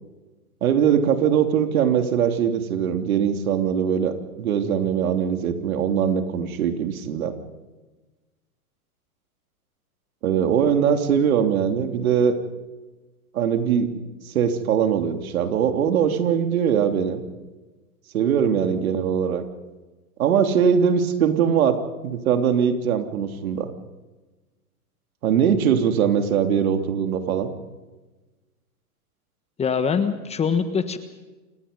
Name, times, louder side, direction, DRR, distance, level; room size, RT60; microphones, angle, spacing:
voice 1, 0.6-7.3 10.2-12.3 13.3-13.9 14.2-17.2 18.1-19.4 20.2-23.7 25.2-27.5, right 8 dB, 70° right, 7 dB, 3.2 m, -21 dB
voice 2, 29.6-31.0, left 6 dB, 15° left, 10 dB, 1.4 m, -23 dB
27.5 x 19.5 x 5.4 m, 1.2 s
hypercardioid pair, 130°, 44 cm